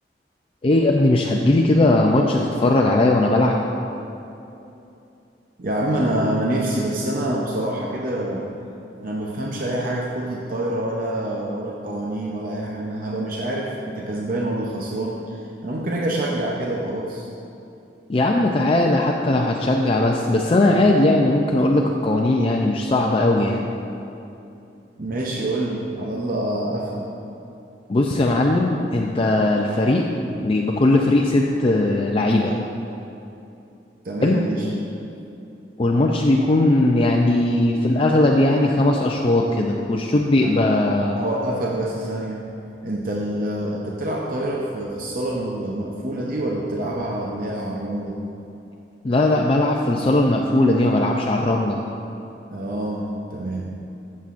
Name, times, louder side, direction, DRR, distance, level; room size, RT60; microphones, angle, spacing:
voice 1, 0.6-3.6 18.1-23.7 27.9-30.0 30.4-32.5 34.2-34.4 35.8-41.2 49.0-51.8, left 2 dB, 30° left, 0 dB, 0.4 m, -19 dB
voice 2, 5.6-8.5 9.0-17.3 25.0-27.1 34.0-34.7 40.4-40.5 41.2-42.4 42.8-48.2 52.5-53.7, right 1 dB, 50° right, -2 dB, 0.7 m, -26 dB
14.0 x 7.5 x 2.5 m, 2.8 s
head